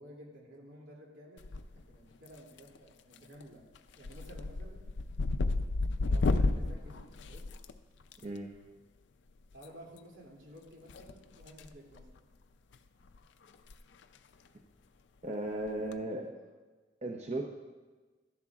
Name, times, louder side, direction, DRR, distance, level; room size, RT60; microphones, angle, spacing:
voice 1, 0.0-1.5 1.7-3.6 4.0-4.9 6.0-7.5 9.5-12.1 16.0-16.3, equal, 75° right, -3 dB, 2.6 m, -52 dB
sound 1, 1.4-1.9 2.3-2.8 3.1-3.4 3.7-8.2 9.5-9.7 10.9-11.7 12.0-12.2 12.7-12.8 13.1-13.2 13.5-13.7 14.0-14.1 15.7-15.9, left 3 dB, 70° left, 0.5 m, -32 dB
voice 2, 15.2-16.3 17.0-17.7, right 1 dB, 35° right, 0 dB, 0.7 m, -36 dB
13.5 x 11.0 x 2.4 m, 1.3 s
head